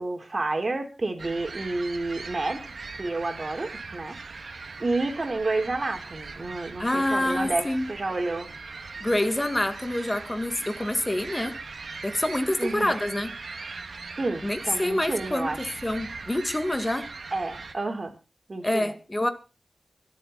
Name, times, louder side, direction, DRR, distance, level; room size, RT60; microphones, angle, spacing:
voice 1, 0.0-2.7 3.0-8.5 12.6-13.0 14.2-15.7 17.3-18.1 18.5-18.9, right 2 dB, 45° right, 3.8 m, -30 dB
sound 1, 1.2-17.7, right 4 dB, 70° right, 2.1 m, -40 dB
voice 2, 6.8-7.9 9.0-11.6 12.0-13.3 14.4-17.1 18.6-19.3, left 1 dB, 20° left, 2.0 m, -27 dB
25.0 x 8.6 x 4.2 m
wide cardioid pair, 70°, 0 cm